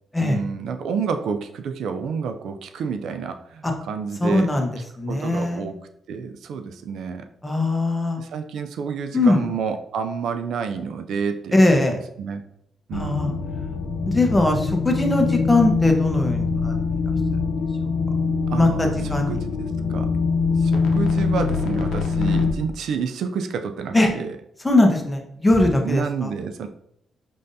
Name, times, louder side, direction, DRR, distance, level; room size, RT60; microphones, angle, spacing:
voice 1, 0.2-4.5 5.1-5.8 6.1-7.3 8.2-11.8 12.2-12.4 12.9-13.4 18.5-20.1 20.6-24.4 25.8-26.7, right 6 dB, 80° right, 8 dB, 0.4 m, -29 dB
voice 2, 4.2-4.7 5.0-5.7 7.4-8.2 9.1-9.5 11.5-12.0 12.9-13.4 14.1-16.7 18.5-19.4 23.9-24.1 24.6-26.3, left 2 dB, 15° left, 3 dB, 0.9 m, -20 dB
sound 1, 12.9-22.5, left 4 dB, 85° left, 0.7 m, -23 dB
5.3 x 3.3 x 2.7 m, 0.73 s
cardioid pair, 85°, 0 cm